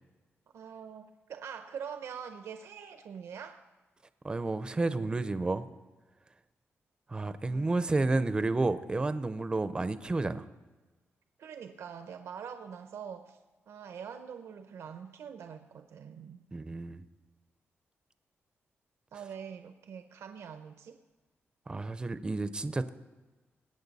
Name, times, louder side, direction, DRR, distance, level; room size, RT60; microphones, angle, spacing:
voice 1, 0.5-3.6 7.4-8.1 11.4-13.4 13.7-16.4 19.1-21.0, right 7 dB, 85° right, 7 dB, 0.7 m, -44 dB
voice 2, 4.2-5.7 7.1-10.4 16.5-17.0 21.7-22.9, right 2 dB, 20° right, 12 dB, 0.5 m, -31 dB
20.0 x 8.6 x 4.1 m, 1.2 s
wide cardioid pair, 150°, 5 cm